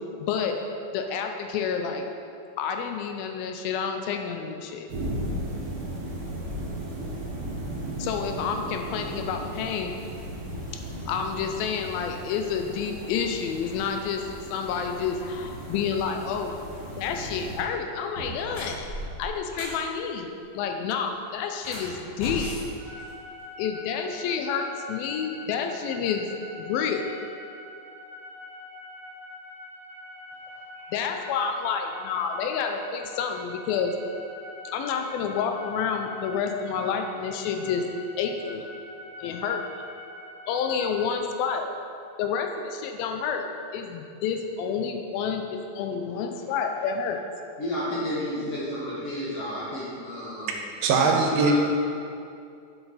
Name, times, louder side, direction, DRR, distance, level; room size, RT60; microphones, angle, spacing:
voice 1, 0.2-0.5 0.9-2.0 2.6-4.9 8.0-9.9 10.7-16.6 17.0-18.9 19.2-22.5 23.6-26.3 26.6-27.1 30.9-33.9 34.7-37.9 38.2-38.7 39.2-39.6 40.5-41.7 42.2-43.5 43.7-47.2, left 6 dB, 80° left, 4 dB, 2.3 m, -29 dB
sound 1, 4.9-17.6, right 1 dB, 55° right, 1.7 m, -36 dB
sound 2, 17.4-17.5 18.0-19.8 21.5-23.6, equal, 45° left, 2.1 m, -37 dB
sound 3, 22.8-41.2, left 2 dB, 40° right, 2.5 m, -44 dB
voice 2, 47.6-50.6 50.9-51.5, equal, 60° left, -8 dB, 1.6 m, -32 dB
voice 3, 50.8-51.5, right 4 dB, 80° right, 2 dB, 2.4 m, -21 dB
7.3 x 7.0 x 4.0 m, 2.5 s
omnidirectional pair, 4.3 m